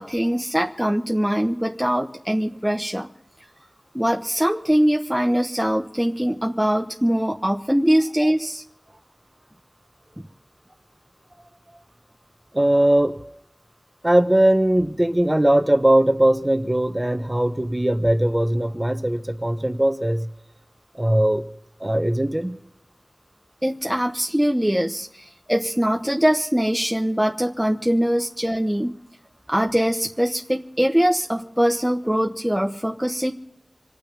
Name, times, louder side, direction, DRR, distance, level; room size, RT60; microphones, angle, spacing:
voice 1, 0.0-3.1 3.9-8.6 23.6-29.0 29.5-33.3, equal, 5° right, 2 dB, 1.0 m, -22 dB
voice 2, 12.5-13.1 14.0-20.3 21.0-21.4 21.8-22.6, right 1 dB, 20° right, 7 dB, 1.3 m, -20 dB
26.5 x 9.0 x 5.4 m, 0.75 s
wide cardioid pair, 60°, 0 cm